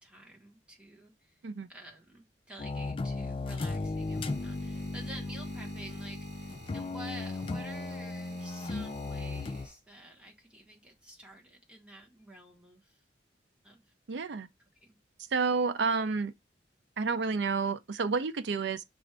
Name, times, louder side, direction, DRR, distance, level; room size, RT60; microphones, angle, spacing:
voice 1, 0.0-1.4 1.7-13.0 13.6-13.8 14.8-15.0, right 1 dB, 5° right, 1.3 m, -50 dB
sound 1, 2.6-9.7, left 3 dB, 30° left, 0.4 m, -36 dB
sound 2, 3.3-10.2 11.0-11.3, right 2 dB, 55° right, 3.4 m, -53 dB
voice 2, 14.1-14.5 15.3-16.3 17.0-18.8, right 4 dB, 75° right, 0.5 m, -30 dB
6.1 x 2.5 x 3.3 m
head